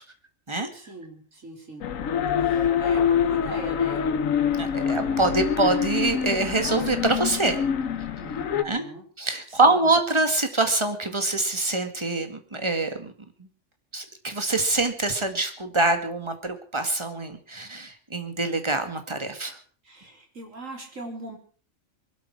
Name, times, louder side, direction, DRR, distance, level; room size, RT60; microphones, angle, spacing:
voice 1, 0.7-1.9 2.4-4.0 8.2-9.0 9.5-9.9 19.8-21.4, right 2 dB, 75° right, 2 dB, 4.2 m, -40 dB
sound 1, 1.8-8.6, left 8 dB, 85° left, 1.3 m, -25 dB
voice 2, 4.5-7.6 8.6-8.8 9.2-13.1 13.4-13.5 13.9-19.6, right 2 dB, 20° right, 7 dB, 1.9 m, -25 dB
22.0 x 12.5 x 4.7 m, 0.41 s
omnidirectional pair, 1.4 m